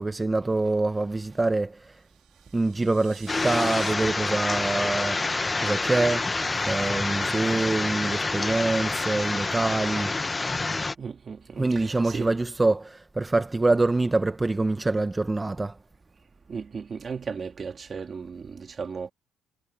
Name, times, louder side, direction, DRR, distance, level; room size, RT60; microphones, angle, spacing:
voice 1, 0.0-2.0 2.5-5.2 5.6-6.3 6.7-10.1 11.6-15.8, right 2 dB, 15° right, 0.7 m, -25 dB
sound 1, 2.0-3.9, right 15 dB, 85° right, 2.1 m, -46 dB
sound 2, 3.3-11.0, left 3 dB, 20° left, 0.7 m, -27 dB
voice 2, 11.0-12.3 16.5-19.1, right 5 dB, 35° right, 3.0 m, -36 dB
cardioid pair, 95°, 0 cm